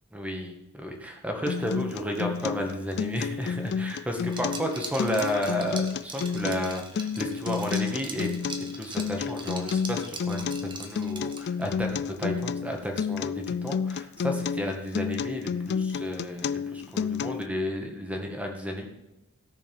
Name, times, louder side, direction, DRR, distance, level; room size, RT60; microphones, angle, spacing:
voice 1, 0.1-8.3 8.6-18.9, equal, 5° right, 2 dB, 1.7 m, -32 dB
Acoustic guitar, 1.5-17.5, left 6 dB, 50° left, 0.3 m, -31 dB
Liquid, 4.3-11.7, right 3 dB, 20° right, 1.2 m, -41 dB
16.5 x 6.8 x 5.5 m, 0.92 s
head